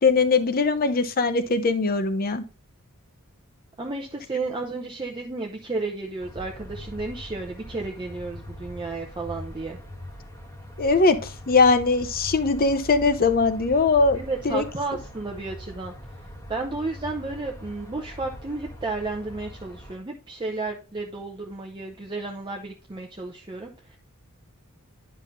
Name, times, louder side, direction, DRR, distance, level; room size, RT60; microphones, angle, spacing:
voice 1, 0.0-2.4 10.8-14.2 14.4-14.6, left 4 dB, 40° left, 10 dB, 0.7 m, -21 dB
voice 2, 3.8-9.8 14.1-15.9 16.5-24.0, right 3 dB, 20° right, 0 dB, 0.7 m, -32 dB
sound 1, 6.2-20.0, equal, 15° left, 1.5 m, -41 dB
10.5 x 5.5 x 2.6 m, 0.34 s
head